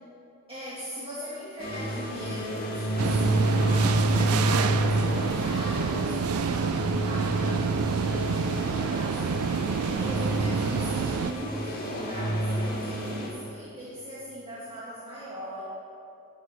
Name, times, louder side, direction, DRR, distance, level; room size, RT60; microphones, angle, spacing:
voice 1, 0.5-9.6 10.0-15.6, equal, 25° right, -8 dB, 2.2 m, -39 dB
sound 1, 1.6-13.3, right 1 dB, 40° left, 2.3 m, -29 dB
sound 2, 3.0-11.3, right 6 dB, 85° right, 0.4 m, -28 dB
13.0 x 5.4 x 8.9 m, 2.7 s
head